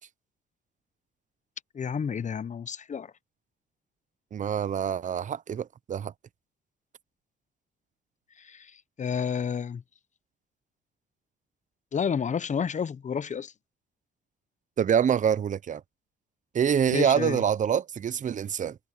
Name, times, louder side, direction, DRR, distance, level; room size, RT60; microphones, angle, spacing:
voice 1, 1.7-3.1 8.4-8.7 9.0-9.8 11.9-13.5 16.9-17.4, left 7 dB, 40° left, 0.8 m, -30 dB
voice 2, 4.3-6.1 14.8-15.8 16.5-18.8, right 8 dB, 40° right, 0.6 m, -25 dB
cardioid pair, 90°, 20 cm